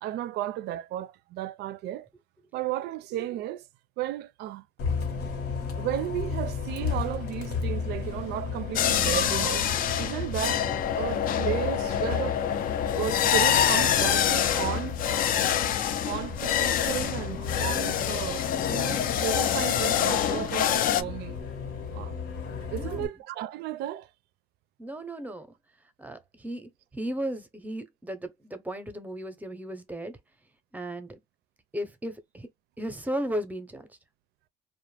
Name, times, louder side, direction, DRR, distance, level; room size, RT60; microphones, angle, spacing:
voice 1, 0.0-2.1 2.5-3.6 4.0-4.6 5.8-9.7 10.0-10.7 11.0-12.4 13.0-15.0 16.1-21.4 21.9-22.2 22.7-24.1, right 13 dB, 80° right, 0.4 m, -34 dB
Bus, 4.8-23.1, left 5 dB, 75° left, 1.0 m, -34 dB
sound 1, 8.8-21.0, left 10 dB, 55° left, 0.4 m, -26 dB
voice 2, 22.8-23.1 24.8-25.5 26.0-30.2 30.7-31.2 31.7-32.5 32.8-33.9, right 1 dB, 10° right, 0.6 m, -35 dB
2.4 x 2.1 x 3.2 m
cardioid pair, 110°, 17 cm